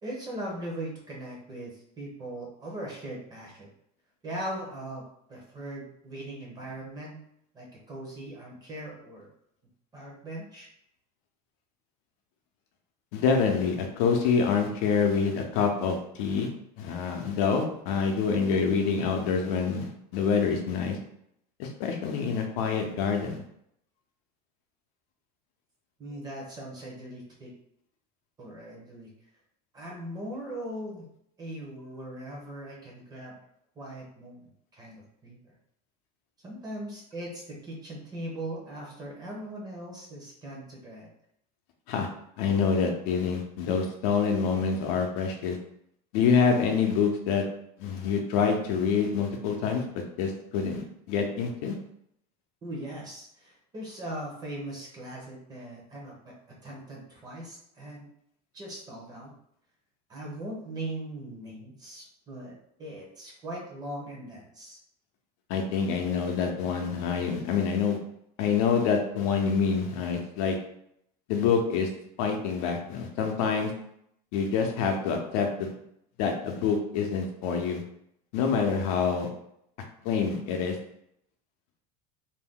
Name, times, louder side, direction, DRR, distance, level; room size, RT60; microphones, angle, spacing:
voice 1, 0.0-3.7 4.2-5.0 5.3-7.2 7.5-9.3 9.9-10.7 26.0-27.5 28.4-29.1 29.7-31.1 31.4-33.3 33.8-35.4 36.4-41.1 52.6-58.1 58.5-59.3 60.1-62.5 62.8-64.8 72.4-72.9, right 1 dB, 20° right, -2 dB, 0.8 m, -40 dB
voice 2, 13.1-16.5 16.8-21.0 21.6-23.4 41.9-42.1 42.4-45.6 46.1-47.4 47.8-51.8 65.5-68.0 68.4-70.6 71.3-71.9 72.2-73.7 74.3-75.7 76.2-77.8 78.3-79.3 80.0-80.8, left 6 dB, 70° left, 3 dB, 0.6 m, -26 dB
2.6 x 2.1 x 3.6 m, 0.73 s
cardioid pair, 155°, 19 cm